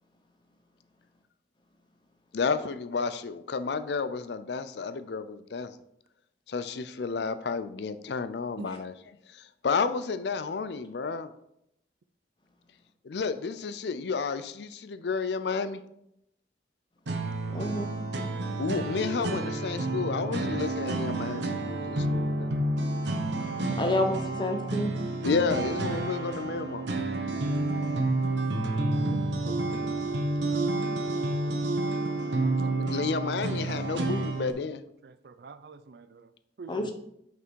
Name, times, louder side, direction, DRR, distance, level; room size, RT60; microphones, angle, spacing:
voice 1, 2.3-5.8 6.5-8.9 9.3-11.3 13.0-15.8 18.6-22.5 25.2-26.9 32.7-34.8, left 5 dB, 65° left, 0.5 m, -31 dB
sound 1, 17.1-34.5, right 2 dB, 80° right, 1.0 m, -30 dB
voice 2, 17.5-17.9 23.8-24.9 29.7-29.8 36.7-36.9, left 1 dB, 25° left, 0.8 m, -29 dB
voice 3, 27.1-28.1 29.0-29.2 29.8-30.5 31.5-33.1 33.6-33.7 34.2-34.5 35.0-36.3 36.6-36.9, right 4 dB, 60° right, 0.5 m, -48 dB
6.0 x 5.8 x 4.6 m
head